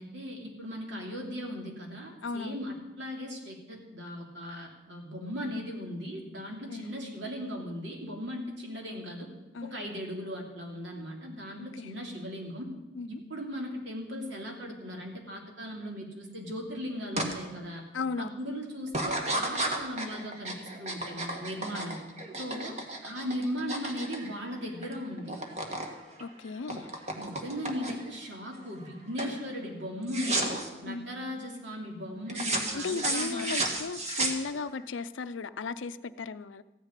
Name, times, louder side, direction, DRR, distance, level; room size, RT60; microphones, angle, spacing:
voice 1, 0.0-9.3 9.6-12.7 13.1-17.8 18.2-22.0 22.4-22.8 23.0-25.4 27.1-30.6 30.8-33.5, equal, 75° right, 0 dB, 3.0 m, -38 dB
voice 2, 2.2-2.6 6.7-6.9 9.5-9.7 11.8-11.9 13.0-13.2 17.9-18.3 26.2-26.9 30.8-31.0 32.7-36.6, left 4 dB, 80° left, 14 dB, 0.5 m, -36 dB
sound 1, 17.2-17.3 17.8-18.2 18.9-24.9 25.2-25.9 26.2-28.2 28.6-28.9 29.2-29.4 30.1-30.7 32.3-34.8, right 2 dB, 35° right, 1.6 m, -33 dB
15.0 x 6.6 x 9.8 m, 1.1 s
head